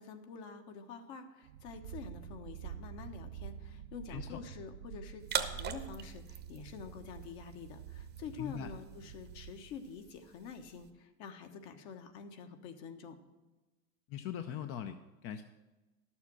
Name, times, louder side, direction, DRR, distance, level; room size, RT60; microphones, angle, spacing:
voice 1, 0.0-13.2, left 6 dB, 55° left, 6 dB, 1.4 m, -47 dB
sound 1, 1.4-9.9, right 9 dB, 85° right, 0.6 m, -48 dB
voice 2, 4.1-4.4 8.4-8.7 14.1-15.4, left 9 dB, 35° left, 8 dB, 0.6 m, -41 dB
sound 2, 5.2-10.9, right 8 dB, 25° right, 0.8 m, -43 dB
11.5 x 7.1 x 6.1 m, 1.1 s
hypercardioid pair, 120°, 39 cm